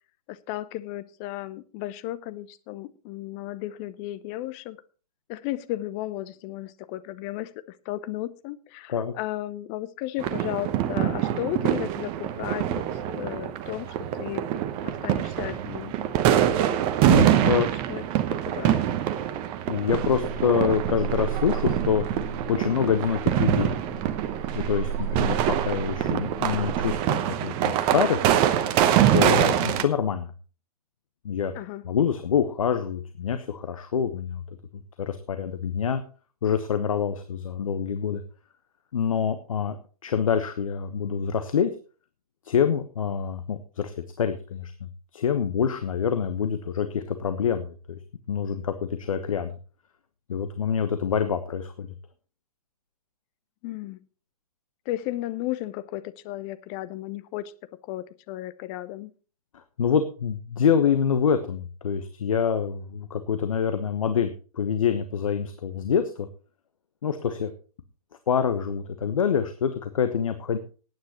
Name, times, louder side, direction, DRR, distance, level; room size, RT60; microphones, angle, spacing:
voice 1, 0.3-4.8 5.3-7.5 7.9-14.5 14.8-15.9 17.9-18.0 18.3-18.8 31.5-31.8 53.6-54.0 54.9-57.5 57.8-59.1, left 15 dB, 25° left, 14 dB, 0.8 m, -34 dB
sound 1, 10.2-29.8, right 11 dB, 25° right, 1.0 m, -25 dB
voice 2, 17.1-17.7 19.7-22.0 22.5-23.8 24.5-28.2 29.1-30.3 31.2-31.5 31.8-34.4 34.7-36.0 36.4-38.2 38.9-39.8 40.0-41.7 42.4-48.0 48.3-48.7 49.0-49.5 50.3-51.9 59.8-66.3 67.0-67.5 68.3-70.6, left 7 dB, 60° left, 9 dB, 1.2 m, -26 dB
sound 2, 19.9-27.0, right 7 dB, 10° left, 3.9 m, -34 dB
18.5 x 9.5 x 3.0 m, 0.37 s
figure-of-eight pair, 120°, 20 cm